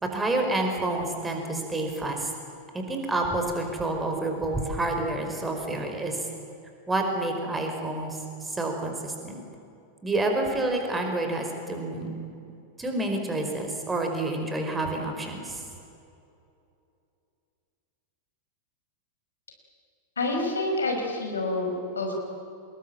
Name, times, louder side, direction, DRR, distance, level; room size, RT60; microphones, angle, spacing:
voice 1, 0.0-2.3 2.7-6.3 6.9-9.4 10.0-12.1 12.8-15.6, right 2 dB, 10° right, 3 dB, 5.1 m, -29 dB
voice 2, 20.2-22.2, left 2 dB, 70° left, 3 dB, 5.1 m, -28 dB
26.5 x 21.0 x 9.0 m, 2.6 s
figure-of-eight pair, 90°, 0 cm